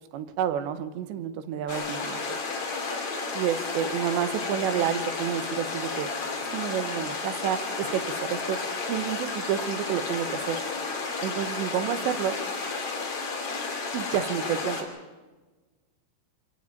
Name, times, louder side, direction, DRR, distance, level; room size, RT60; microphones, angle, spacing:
voice 1, 0.1-2.4 3.3-6.1 6.5-8.6 8.9-10.6 11.2-12.4 13.9-14.9, right 9 dB, 85° right, 11 dB, 3.3 m, -29 dB
sound 1, 1.7-14.8, left 4 dB, 40° left, 3.2 m, -32 dB
25.0 x 13.5 x 9.1 m, 1.2 s
omnidirectional pair, 5.0 m